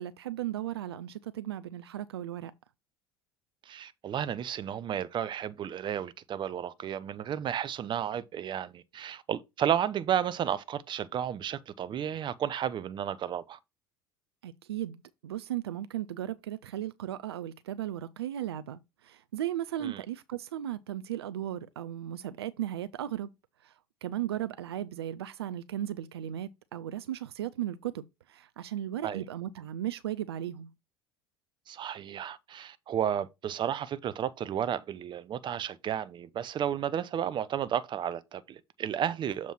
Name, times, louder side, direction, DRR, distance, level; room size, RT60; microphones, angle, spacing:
voice 1, 0.0-2.5 14.4-23.3 23.6-23.7 24.0-30.7, right 12 dB, 80° right, 0.4 m, -36 dB
voice 2, 3.7-13.6 19.8-20.0 29.0-29.2 31.7-39.5, right 9 dB, 35° right, 0.6 m, -32 dB
7.2 x 3.0 x 5.7 m
figure-of-eight pair, 70°, 13 cm